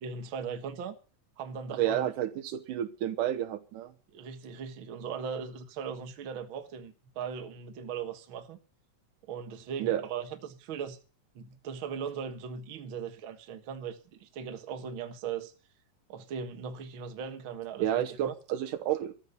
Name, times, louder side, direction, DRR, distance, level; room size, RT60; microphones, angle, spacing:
voice 1, 0.0-1.0 1.4-2.1 4.1-8.6 9.2-11.0 11.4-15.5 16.1-18.3, right 6 dB, 50° right, 1.8 m, -39 dB
voice 2, 1.8-3.9 9.8-10.0 17.8-19.1, right 11 dB, 80° right, 2.6 m, -30 dB
13.5 x 8.6 x 7.9 m
omnidirectional pair, 3.7 m